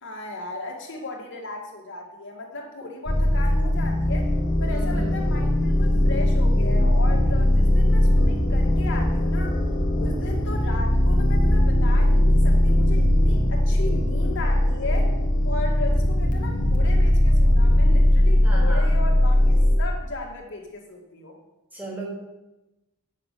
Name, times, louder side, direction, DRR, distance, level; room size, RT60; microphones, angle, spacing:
voice 1, 0.0-4.3 4.6-9.6 10.0-15.1 15.4-21.4, left 2 dB, 55° left, 0 dB, 2.2 m, -36 dB
sound 1, 3.1-19.8, left 1 dB, 35° left, 1.5 m, -19 dB
voice 2, 4.7-5.1 18.4-18.9 21.7-22.1, right 2 dB, 10° right, -3 dB, 3.0 m, -36 dB
9.0 x 6.6 x 6.7 m, 0.99 s
head